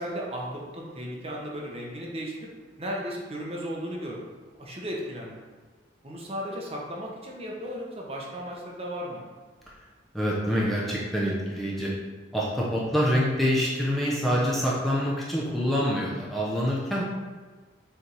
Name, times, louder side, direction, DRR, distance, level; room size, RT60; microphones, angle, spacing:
voice 1, 0.0-2.5 2.8-4.3 4.6-5.4 6.0-9.3 13.0-13.2, equal, 30° right, -2 dB, 1.0 m, -35 dB
voice 2, 10.1-11.9 12.3-17.0, equal, ahead, -6 dB, 0.8 m, -26 dB
6.7 x 3.5 x 4.6 m, 1.4 s
head